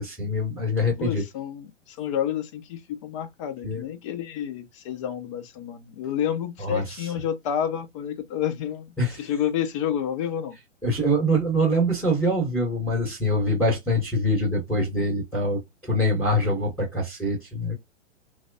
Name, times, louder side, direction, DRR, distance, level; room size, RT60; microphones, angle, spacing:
voice 1, 0.0-1.2 3.6-3.8 6.6-6.8 9.0-9.2 10.8-17.7, equal, 5° left, 0.9 m, -24 dB
voice 2, 1.0-10.5, left 9 dB, 25° left, 0.4 m, -29 dB
3.1 x 2.1 x 2.5 m
figure-of-eight pair, 110°, 38 cm